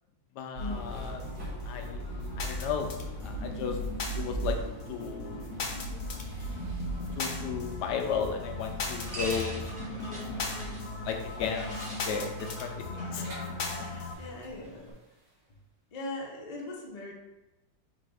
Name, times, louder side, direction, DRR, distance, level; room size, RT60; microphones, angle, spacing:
voice 1, 0.4-1.2 1.6-2.0 2.4-2.9 3.2-3.8 4.1-4.6 4.9-5.4 7.2-9.7 11.0-13.2 13.8-14.1, left 6 dB, 90° left, 4 dB, 1.2 m, -34 dB
sound 1, 0.5-14.5, right 1 dB, 70° right, 1.9 m, -40 dB
sound 2, 1.0-14.1, left 3 dB, 75° left, 1.2 m, -39 dB
sound 3, 6.9-14.9, equal, 15° right, 1.0 m, -45 dB
voice 2, 13.9-14.9 15.9-17.1, left 2 dB, 40° left, -1 dB, 0.5 m, -40 dB
4.2 x 2.6 x 4.8 m, 1.0 s
omnidirectional pair, 1.7 m